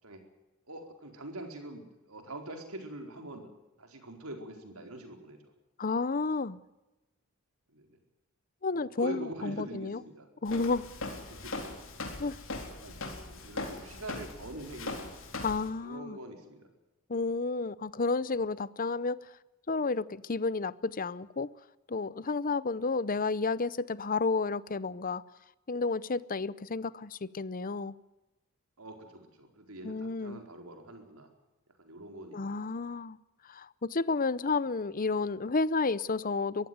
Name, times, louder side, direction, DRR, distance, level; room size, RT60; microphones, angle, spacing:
voice 1, 0.7-3.5 3.8-5.5 7.7-8.0 8.7-10.3 11.3-11.7 12.8-13.0 13.3-15.0 15.8-16.7 28.8-31.3 31.8-32.5, right 1 dB, 85° right, 4 dB, 4.5 m, -44 dB
voice 2, 5.8-6.6 8.6-10.0 10.4-10.9 12.2-12.4 15.4-16.2 17.1-19.2 19.7-21.5 21.9-25.2 25.7-27.9 29.8-30.4 32.3-33.2 33.4-36.7, left 4 dB, 40° left, 19 dB, 0.7 m, -31 dB
Walk footsteps, 10.5-15.7, left 2 dB, 65° left, 4.1 m, -40 dB
23.0 x 15.0 x 9.5 m, 1.0 s
head